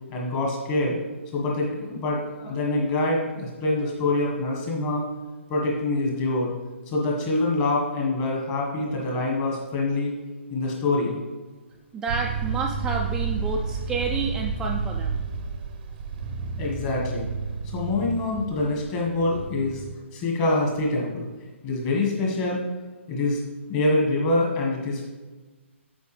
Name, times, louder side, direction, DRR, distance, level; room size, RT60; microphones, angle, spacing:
voice 1, 0.1-1.0 1.3-5.0 5.5-6.5 6.9-10.1 10.5-11.2 16.6-17.3 17.7-19.8 20.1-21.3 21.6-22.6 23.1-23.4 23.7-25.0, left 2 dB, 25° left, -2 dB, 1.6 m, -25 dB
voice 2, 11.9-15.2, right 4 dB, 10° right, -1 dB, 0.3 m, -29 dB
sound 1, 12.1-20.0, right 5 dB, 40° right, 0.7 m, -31 dB
8.2 x 4.7 x 3.4 m, 1.3 s
figure-of-eight pair, 135°, 7 cm